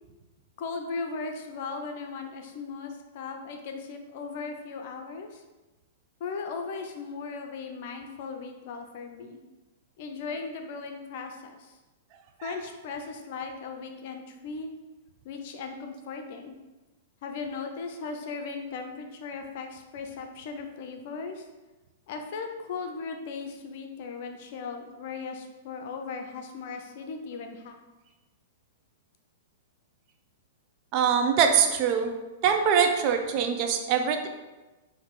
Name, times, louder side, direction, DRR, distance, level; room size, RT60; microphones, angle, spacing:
voice 1, 0.6-5.4 6.2-9.4 10.0-11.8 12.4-14.7 15.2-16.6 17.2-21.5 22.1-27.8, left 4 dB, 55° left, 5 dB, 0.6 m, -37 dB
voice 2, 30.9-32.1 32.4-34.3, right 7 dB, 45° right, 4 dB, 0.6 m, -23 dB
4.7 x 2.8 x 3.7 m, 1.1 s
hypercardioid pair, 110°, 0 cm